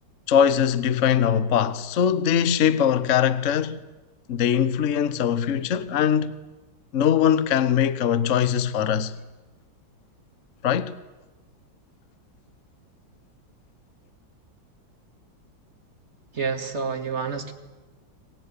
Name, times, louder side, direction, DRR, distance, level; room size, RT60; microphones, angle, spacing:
voice 1, 0.3-3.8 4.3-6.3 6.9-9.1 10.6-11.0, left 8 dB, 50° left, 1.1 m, -21 dB
voice 2, 16.3-17.5, right 5 dB, 35° right, 2.2 m, -28 dB
24.5 x 20.5 x 9.7 m
omnidirectional pair, 2.1 m